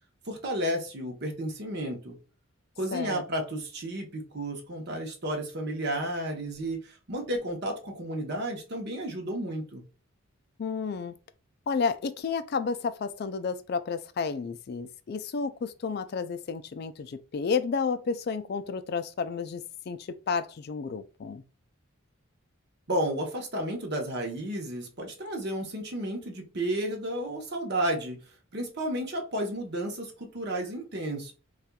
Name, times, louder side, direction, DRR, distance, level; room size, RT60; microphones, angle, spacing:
voice 1, 0.3-2.2 2.8-9.8 22.9-28.2 28.5-31.3, right 1 dB, 50° right, 0.8 m, -32 dB
voice 2, 2.9-3.2 10.6-11.2 11.7-21.4, left 5 dB, 50° left, 0.3 m, -31 dB
4.2 x 2.4 x 2.2 m
head